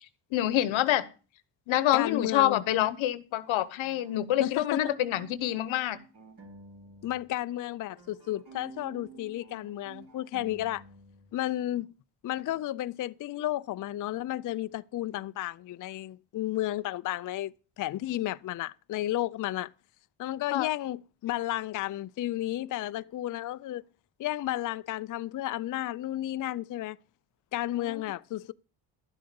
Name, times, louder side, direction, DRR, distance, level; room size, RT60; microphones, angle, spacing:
voice 1, 0.3-1.0 1.7-6.0 20.5-20.7 27.7-27.9, left 13 dB, 90° left, 1.1 m, -27 dB
voice 2, 1.9-2.6 4.4-4.9 7.0-10.8 11.3-11.9 12.2-19.7 20.2-23.8 24.2-27.0 27.5-28.5, left 14 dB, 45° left, 0.4 m, -32 dB
sound 1, 3.3-7.2 7.5-11.3, right 4 dB, 45° right, 3.3 m, -51 dB
12.0 x 7.7 x 5.3 m
cardioid pair, 110°, 46 cm